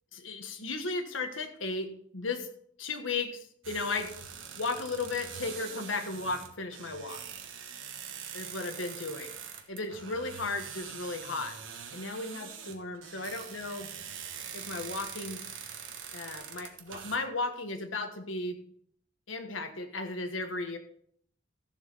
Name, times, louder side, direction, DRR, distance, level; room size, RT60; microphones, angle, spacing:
voice 1, 0.2-2.5 2.8-4.1 4.6-7.2 8.3-9.3 9.7-11.6 11.9-13.9 14.5-15.4 16.1-18.6 19.3-20.8, left 3 dB, 90° left, 6 dB, 1.4 m, -35 dB
sound 1, 3.6-17.2, right 7 dB, 90° right, 1.3 m, -44 dB
14.5 x 7.4 x 4.1 m, 0.66 s
head